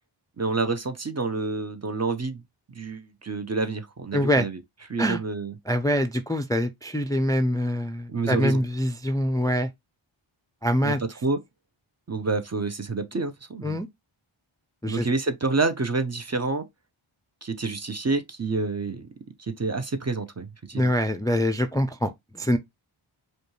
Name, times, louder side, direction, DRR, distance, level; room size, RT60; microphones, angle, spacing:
voice 1, 0.4-2.4 2.7-4.6 4.9-5.6 8.1-8.6 10.8-11.4 12.1-13.8 14.8-16.7 17.4-19.1 19.4-20.9, right 3 dB, 30° right, 0.6 m, -28 dB
voice 2, 4.1-4.5 5.0-5.2 5.7-9.7 10.6-11.0 13.6-13.9 14.8-15.1 20.7-22.6, equal, 10° left, 0.4 m, -24 dB
5.1 x 2.3 x 3.0 m
wide cardioid pair, 60°, 50 cm